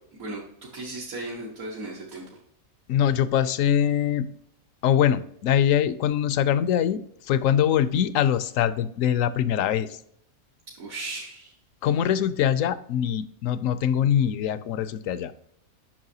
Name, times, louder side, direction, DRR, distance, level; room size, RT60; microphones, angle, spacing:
voice 1, 0.1-2.2 10.7-11.5, right 2 dB, 75° right, -5 dB, 1.8 m, -36 dB
voice 2, 2.9-4.3 4.8-10.0 11.8-15.3, left 9 dB, 70° left, 14 dB, 0.9 m, -23 dB
8.8 x 6.0 x 2.7 m, 0.69 s
omnidirectional pair, 1.5 m